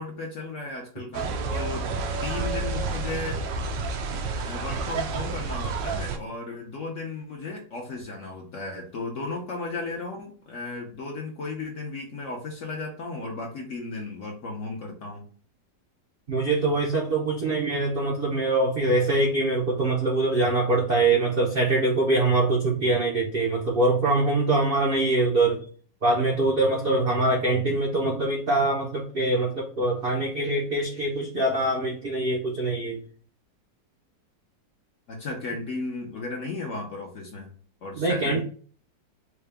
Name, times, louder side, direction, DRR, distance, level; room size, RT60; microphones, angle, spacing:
voice 1, 0.0-1.9 2.2-3.4 4.4-15.2 35.1-37.5 37.8-38.4, left 3 dB, 60° left, 1 dB, 0.8 m, -35 dB
sound 1, 1.1-6.2, right 3 dB, 80° right, 1.3 m, -30 dB
voice 2, 16.3-25.6 26.0-33.0 38.0-38.4, right 2 dB, 65° right, -1 dB, 0.5 m, -23 dB
4.6 x 2.2 x 3.3 m, 0.43 s
omnidirectional pair, 2.0 m